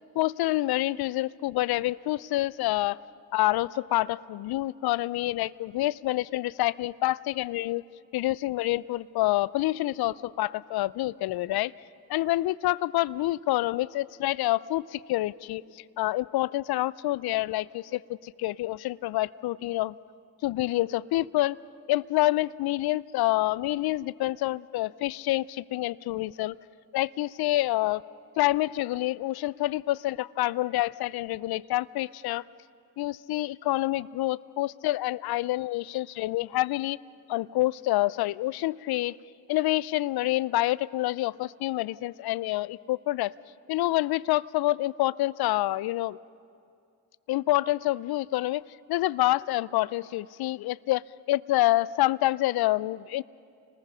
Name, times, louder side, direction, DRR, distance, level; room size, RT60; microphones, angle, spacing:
voice 1, 0.2-3.0 3.3-7.8 8.1-11.7 12.1-20.0 20.4-21.6 21.9-26.6 26.9-28.0 28.4-32.4 33.0-37.0 37.3-39.1 39.5-43.3 43.7-46.2 47.3-48.6 48.9-53.2, left 17 dB, 60° left, 21 dB, 0.6 m, -27 dB
29.0 x 20.0 x 5.6 m, 2.4 s
hypercardioid pair, 45°, 43 cm